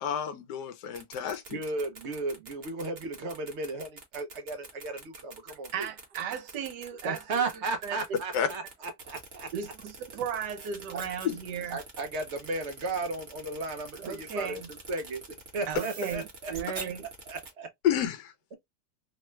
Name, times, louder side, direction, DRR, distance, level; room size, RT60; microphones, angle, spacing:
voice 1, 0.0-1.6 8.3-8.5 11.2-11.4 13.4-13.6 17.8-18.3, left 9 dB, 75° left, 1.1 m, -30 dB
sound 1, 0.8-17.5, right 3 dB, 45° right, 1.1 m, -45 dB
voice 2, 1.5-5.9 7.0-8.6 9.0-9.5 10.9-11.0 11.7-14.6 14.9-15.2 15.5-16.5 17.3-17.7, right 3 dB, 65° right, 0.7 m, -34 dB
voice 3, 5.7-8.2 9.5-11.8 13.9-14.7 15.7-17.1, right 8 dB, 80° right, 1.2 m, -36 dB
3.2 x 2.2 x 3.0 m
omnidirectional pair, 1.8 m